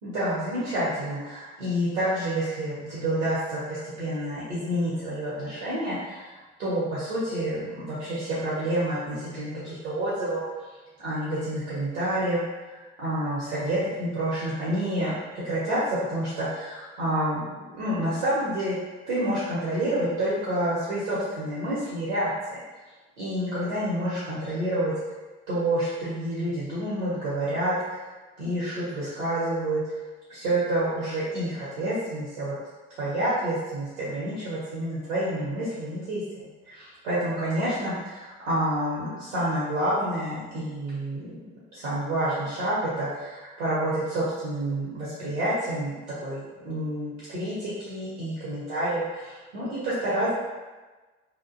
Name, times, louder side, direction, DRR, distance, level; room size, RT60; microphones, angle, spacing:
voice 1, 0.0-6.3 6.6-10.4 11.0-12.4 12.7-18.8 19.1-22.6 23.2-24.9 25.5-28.0 28.4-29.8 30.3-32.5 33.0-37.9 38.2-41.3 41.7-45.9 46.2-50.3, right 1 dB, 75° right, -10 dB, 0.7 m, -28 dB
2.4 x 2.1 x 2.4 m, 1.2 s
figure-of-eight pair, 50°, 33 cm